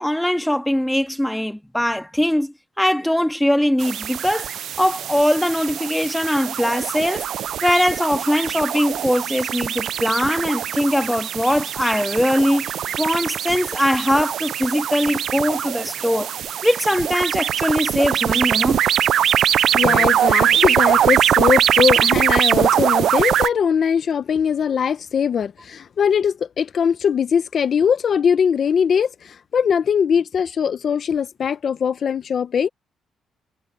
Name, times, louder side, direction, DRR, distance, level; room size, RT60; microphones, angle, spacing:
voice 1, 0.0-4.5 4.8-7.3 7.6-16.3 16.6-18.8, equal, 5° left, 1.9 m, -21 dB
sound 1, 3.8-23.5, right 10 dB, 70° right, 0.3 m, -22 dB
voice 2, 19.7-32.7, left 7 dB, 55° left, 1.0 m, -21 dB
cardioid pair, 90°, 0 cm